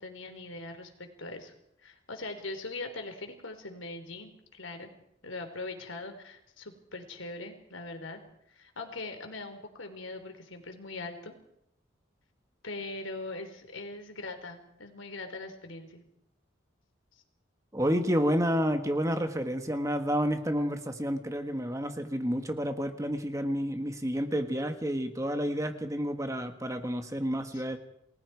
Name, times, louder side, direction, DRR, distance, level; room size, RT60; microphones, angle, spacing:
voice 1, 0.0-1.5 1.8-4.9 5.2-8.2 8.5-11.3 12.6-16.0 27.5-27.6, left 2 dB, 90° left, 6 dB, 3.7 m, -41 dB
voice 2, 17.7-27.8, equal, 15° right, 7 dB, 1.5 m, -30 dB
29.0 x 20.5 x 4.8 m, 0.78 s
head